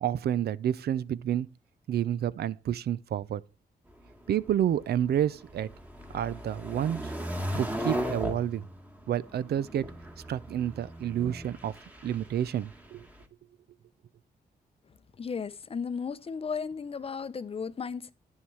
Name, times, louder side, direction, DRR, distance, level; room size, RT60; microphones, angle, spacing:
voice 1, 0.0-1.5 1.9-3.4 4.3-5.7 6.1-7.1 7.5-8.6 9.1-9.9 10.3-11.8 12.0-13.1, right 10 dB, 75° right, 0.5 m, -29 dB
sound 1, 3.9-13.2, equal, 10° right, 1.3 m, -38 dB
voice 2, 15.2-18.1, left 5 dB, 35° left, 0.6 m, -35 dB
10.5 x 7.1 x 4.7 m
wide cardioid pair, 140°, 17 cm